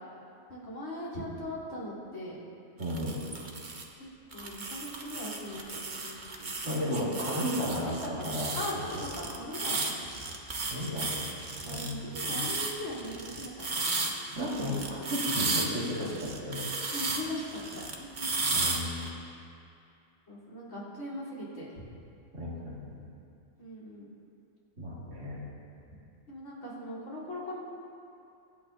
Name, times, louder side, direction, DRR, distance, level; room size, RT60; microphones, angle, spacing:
voice 1, 0.5-2.4 3.9-4.1 4.3-7.0 7.7-7.8 8.2-8.7 9.0-9.9 11.6-14.1 16.9-17.6 17.9-18.4 20.3-21.8 23.6-24.1 26.3-27.6, left 1 dB, 70° left, -7 dB, 4.1 m, -40 dB
sound 1, 2.8-3.8 4.3-19.1, right 3 dB, 40° right, 1.1 m, -34 dB
voice 2, 2.8-3.2 6.6-7.9 8.2-8.5 10.7-11.2 11.7-12.4 14.3-16.7 18.5-19.1 22.3-23.0 24.8-25.4, equal, 60° right, -7 dB, 2.7 m, -34 dB
24.0 x 8.8 x 2.8 m, 2.6 s
omnidirectional pair, 1.4 m